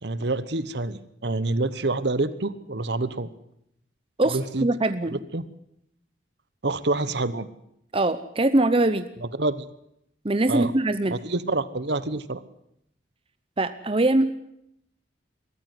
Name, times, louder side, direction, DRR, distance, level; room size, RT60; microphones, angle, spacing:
voice 1, 0.0-3.3 4.3-4.7 5.3-5.5 6.6-7.5 9.4-9.7 10.5-10.7 11.1-12.4, right 2 dB, 60° right, 15 dB, 1.1 m, -27 dB
voice 2, 4.2-5.2 7.9-9.1 10.2-11.2 13.6-14.5, right 2 dB, 30° right, 11 dB, 0.8 m, -22 dB
22.0 x 14.0 x 9.5 m, 0.78 s
head